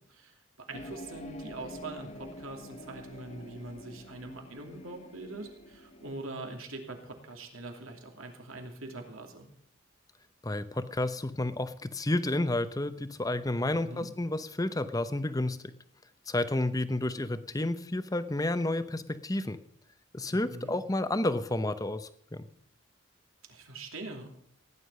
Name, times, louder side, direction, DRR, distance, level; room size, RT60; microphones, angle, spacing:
voice 1, 0.1-9.5 13.8-14.0 20.3-20.7 23.5-24.3, right 2 dB, 85° right, 3 dB, 2.8 m, -43 dB
sound 1, 0.7-6.2, left 1 dB, 35° left, 1.4 m, -47 dB
voice 2, 10.4-15.6 16.3-19.6 20.1-22.5, left 1 dB, 15° left, 12 dB, 0.7 m, -31 dB
16.5 x 9.9 x 5.5 m, 0.66 s
head